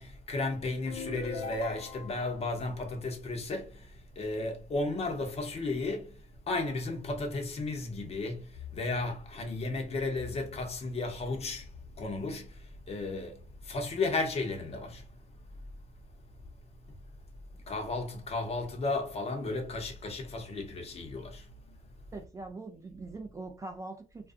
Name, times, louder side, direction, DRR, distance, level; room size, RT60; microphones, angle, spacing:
voice 1, 0.0-15.1 17.7-21.9, left 3 dB, 35° left, 0.8 m, -34 dB
sound 1, 0.9-2.3, left 4 dB, 75° left, 0.5 m, -39 dB
voice 2, 22.1-24.3, right 3 dB, 20° right, 0.4 m, -42 dB
2.4 x 2.3 x 2.5 m
cardioid pair, 110°, 17 cm